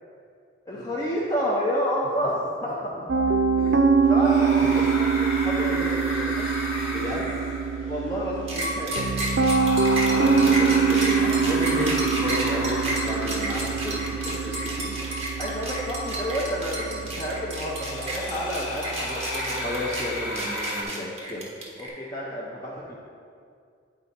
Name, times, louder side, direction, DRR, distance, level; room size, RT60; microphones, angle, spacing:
voice 1, 0.7-2.4 2.6-2.9 3.6-3.8 4.1-6.5 7.9-9.2 15.4-19.7 21.8-23.0, equal, 20° left, -6 dB, 0.7 m, -30 dB
Piano, 3.1-20.2, right 5 dB, 60° right, 0.4 m, -25 dB
sound 1, 4.0-20.8, left 1 dB, 75° left, 1.5 m, -34 dB
voice 2, 6.9-7.3 9.9-15.0 16.9-17.0 19.6-21.5, left 1 dB, 45° left, -5 dB, 1.6 m, -33 dB
sound 2, 8.5-21.9, right 1 dB, 35° right, 1.3 m, -31 dB
9.4 x 4.7 x 4.1 m, 2.3 s
head